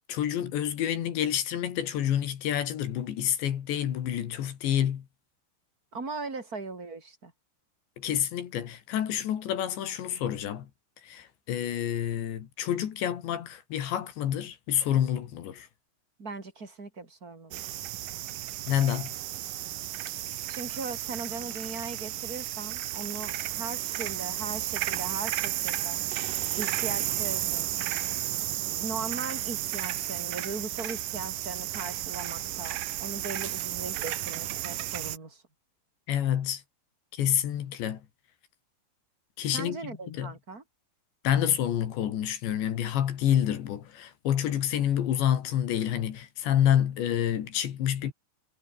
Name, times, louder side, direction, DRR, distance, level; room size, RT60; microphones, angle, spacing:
voice 1, 0.1-5.1 8.0-10.7 11.0-15.7 18.7-19.1 36.1-36.6 37.1-38.0 39.4-40.3 41.2-48.1, left 10 dB, 70° left, 4.4 m, -28 dB
voice 2, 5.9-7.3 16.2-17.9 20.5-26.0 26.3-27.8 28.6-35.4 39.5-40.6, right 3 dB, 20° right, 4.4 m, -39 dB
sound 1, 17.5-35.2, right 14 dB, 75° right, 2.0 m, -33 dB
omnidirectional pair, 5.5 m